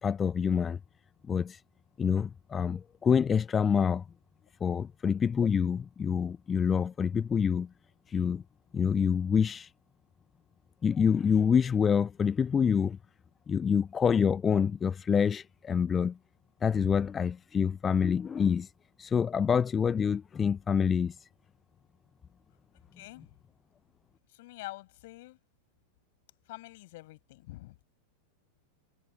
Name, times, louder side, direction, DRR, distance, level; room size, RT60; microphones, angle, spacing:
voice 1, 0.0-0.8 1.3-1.6 2.0-4.0 4.6-7.7 8.1-8.4 8.7-9.7 10.8-13.0 13.5-16.2 16.6-18.7 19.0-21.3, left 7 dB, 20° left, 0.5 m, -27 dB
voice 2, 22.9-23.3 24.3-25.4 26.5-27.8, left 19 dB, 50° left, 6.9 m, -46 dB
figure-of-eight pair, 90°, 0 cm